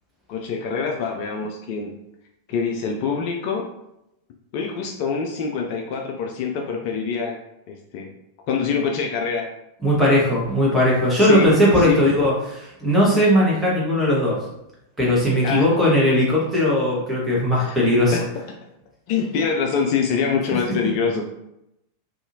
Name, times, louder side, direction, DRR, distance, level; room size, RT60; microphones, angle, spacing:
voice 1, 0.3-1.9 2.5-3.6 4.5-7.4 7.7-8.1 8.5-9.4 11.2-12.0 15.4-15.7 17.6-17.8 18.1-18.3 19.1-21.2, left 6 dB, 45° left, 1 dB, 0.3 m, -25 dB
voice 2, 9.8-14.4 15.0-18.2, left 1 dB, 5° right, -6 dB, 1.1 m, -18 dB
2.7 x 2.4 x 2.7 m, 0.84 s
figure-of-eight pair, 90°, 0 cm